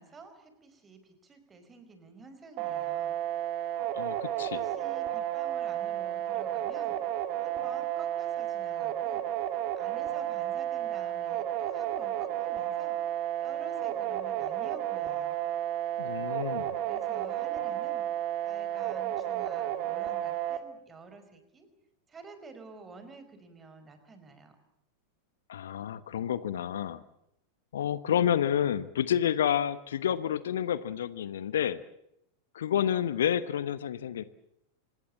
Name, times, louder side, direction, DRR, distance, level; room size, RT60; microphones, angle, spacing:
voice 1, 0.0-3.2 4.3-7.0 7.4-9.3 9.8-13.1 13.4-15.4 16.8-18.1 18.4-21.7 22.1-24.6, right 4 dB, 20° right, 9 dB, 4.9 m, -50 dB
sound 1, 2.6-20.6, right 11 dB, 40° right, 2.1 m, -32 dB
voice 2, 3.9-4.6 16.0-16.8 25.5-27.0 27.7-31.8 32.5-34.2, left 9 dB, 60° left, 16 dB, 1.0 m, -29 dB
26.5 x 19.5 x 8.4 m, 0.80 s
figure-of-eight pair, 90°, 0 cm